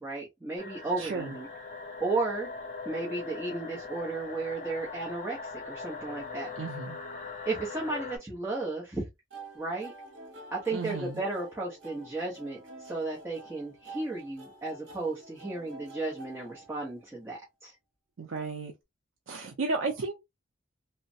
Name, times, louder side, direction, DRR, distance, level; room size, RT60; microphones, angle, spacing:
voice 1, 0.0-1.5 2.0-2.5 2.9-6.5 7.5-9.0 9.6-9.9 10.5-17.7, right 3 dB, 15° right, 0.8 m, -34 dB
sound 1, 0.6-8.2, left 4 dB, 40° left, 0.7 m, -41 dB
voice 2, 1.0-1.4 6.6-7.0 10.7-11.2 18.2-18.7 19.3-20.1, right 3 dB, 80° right, 0.5 m, -33 dB
sound 2, 9.3-17.2, right 2 dB, 60° right, 1.0 m, -48 dB
3.2 x 2.0 x 2.6 m
head